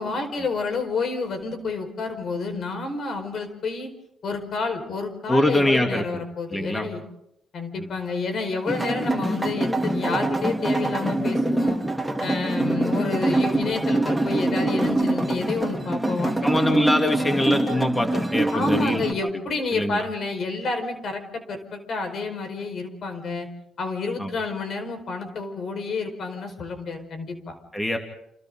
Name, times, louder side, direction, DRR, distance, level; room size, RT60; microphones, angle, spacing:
voice 1, 0.0-3.9 4.2-7.0 7.5-11.8 12.2-16.3 16.8-16.9 18.5-23.5 23.8-27.5, left 3 dB, 60° left, 6 dB, 4.9 m, -29 dB
voice 2, 5.3-6.2 6.5-6.9 7.8-7.9 16.4-19.0 19.7-20.0 24.2-24.3 27.7-28.0, left 1 dB, 10° left, 3 dB, 2.8 m, -23 dB
sound 1, 8.7-19.1, right 1 dB, 5° right, 3.4 m, -24 dB
29.5 x 28.5 x 3.9 m, 0.84 s
cardioid pair, 90°, 0 cm